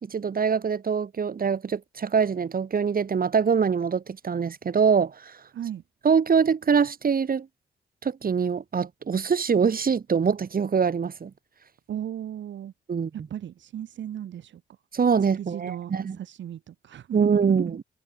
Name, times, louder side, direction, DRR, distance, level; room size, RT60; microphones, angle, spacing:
voice 1, 0.0-5.3 6.0-7.5 8.0-11.3 12.9-13.1 14.9-16.2 17.1-17.8, right 6 dB, 50° right, 3.0 m, -24 dB
voice 2, 11.9-12.7 13.1-14.6 15.4-17.8, right 10 dB, 75° right, 7.4 m, -36 dB
cardioid pair, 65°, 19 cm